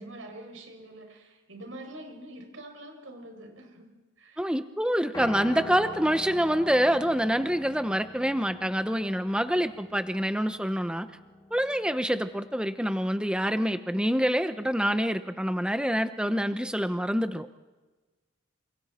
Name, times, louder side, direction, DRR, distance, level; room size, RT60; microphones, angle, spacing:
voice 1, 0.0-3.9 4.2-4.5, right 1 dB, 80° right, 2 dB, 6.4 m, -45 dB
voice 2, 4.4-11.1 11.5-17.5, equal, 5° right, 9 dB, 0.9 m, -26 dB
Piano, 5.1-13.4, left 2 dB, 15° left, 2.3 m, -44 dB
28.5 x 27.5 x 4.4 m, 1.2 s
head